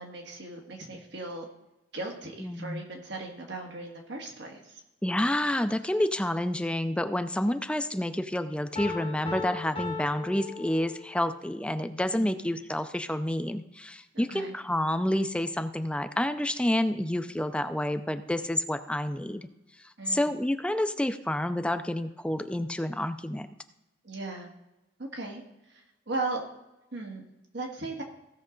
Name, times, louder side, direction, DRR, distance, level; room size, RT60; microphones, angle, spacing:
voice 1, 0.0-1.5 1.9-4.8 12.1-12.4 14.1-14.5 20.0-20.4 24.0-24.5 25.0-26.4 26.9-28.0, right 3 dB, 60° right, 1 dB, 1.7 m, -37 dB
voice 2, 2.4-2.8 5.0-19.5 19.8-23.5, left 1 dB, 5° left, 9 dB, 0.4 m, -29 dB
Piano, 8.8-11.3, left 4 dB, 30° left, 1.3 m, -37 dB
16.0 x 6.5 x 3.8 m, 0.97 s
head